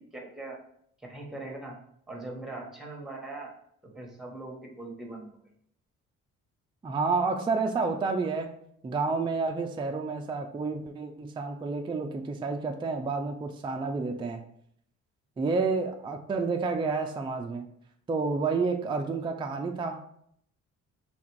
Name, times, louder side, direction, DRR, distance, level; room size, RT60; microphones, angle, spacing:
voice 1, 0.1-0.6 1.0-1.8 2.1-3.5 3.9-5.3, right 2 dB, ahead, 0 dB, 1.1 m, -40 dB
voice 2, 6.8-8.5 8.8-14.4 15.4-17.7 18.1-20.1, right 4 dB, 15° right, 4 dB, 0.3 m, -30 dB
3.5 x 2.4 x 4.5 m, 0.69 s
cardioid pair, 90°, 30 cm